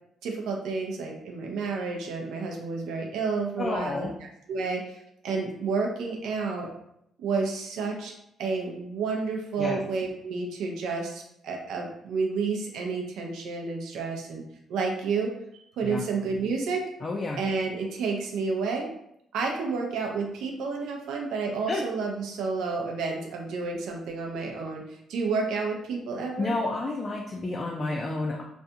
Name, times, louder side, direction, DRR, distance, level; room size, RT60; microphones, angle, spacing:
voice 1, 0.2-6.7 7.2-8.1 8.4-14.4 14.7-15.3 15.8-16.8 17.4-18.9 19.3-26.5, right 4 dB, 85° right, 1 dB, 0.5 m, -30 dB
voice 2, 3.6-4.1 9.6-9.8 15.8-16.0 17.0-17.4 21.7-21.8 26.4-28.4, left 2 dB, 35° left, -1 dB, 0.3 m, -30 dB
2.4 x 2.2 x 2.7 m, 0.77 s
cardioid pair, 90°, 0 cm